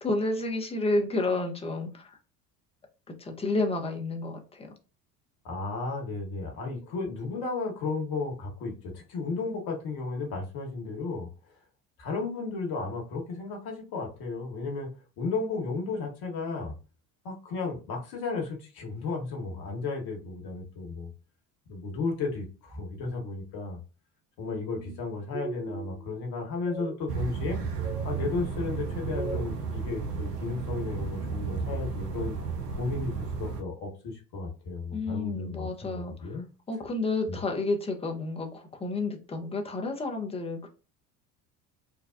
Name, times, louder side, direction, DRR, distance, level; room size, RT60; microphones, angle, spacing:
voice 1, 0.0-2.2 3.1-4.7 34.9-36.4 36.7-40.7, left 2 dB, 15° left, 3 dB, 0.6 m, -30 dB
voice 2, 5.4-11.3 12.0-14.9 15.2-16.7 17.2-21.1 21.7-23.8 24.4-27.6 28.0-32.4 32.8-33.1 33.4-36.5 37.3-37.4, left 3 dB, 50° left, 1 dB, 1.2 m, -34 dB
sound 1, 24.7-25.0 25.3-26.2 26.6-27.0 27.5-28.0 28.8-29.5, right 3 dB, 25° right, 0.6 m, -38 dB
sound 2, 27.1-33.6, right 5 dB, 85° right, 0.6 m, -33 dB
3.5 x 2.2 x 2.4 m, 0.33 s
figure-of-eight pair, 65°, 47 cm